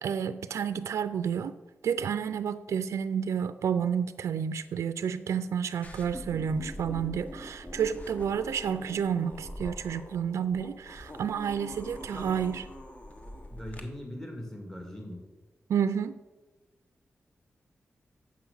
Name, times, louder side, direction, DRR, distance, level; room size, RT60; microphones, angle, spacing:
voice 1, 0.0-1.6 1.8-12.6 15.7-16.2, right 7 dB, 85° right, 12 dB, 0.3 m, -30 dB
sound 1, 5.8-13.8, equal, 30° left, 1.3 m, -43 dB
voice 2, 13.5-15.2, left 1 dB, 10° left, 1 dB, 2.0 m, -40 dB
7.5 x 5.8 x 7.0 m, 1.2 s
cardioid pair, 75°, 5 cm